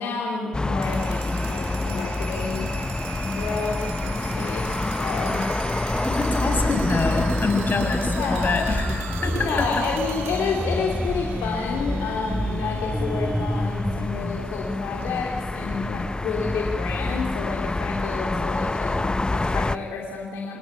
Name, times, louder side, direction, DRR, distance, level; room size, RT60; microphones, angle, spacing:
voice 1, 0.0-2.7 3.3-5.4 8.1-8.7 9.4-20.6, left 5 dB, 80° left, -1 dB, 3.2 m, -30 dB
Haight St. Hummingbirds, 0.5-19.8, left 2 dB, 25° left, 1.0 m, -28 dB
sound 1, 0.7-14.5, right 9 dB, 85° right, 1.9 m, -39 dB
sound 2, 5.9-9.7 10.5-14.1, equal, 5° right, 2.4 m, -30 dB
voice 2, 6.0-9.7, left 4 dB, 55° left, 5 dB, 6.3 m, -26 dB
28.0 x 19.5 x 9.7 m, 1.3 s
supercardioid pair, 45°, 4 cm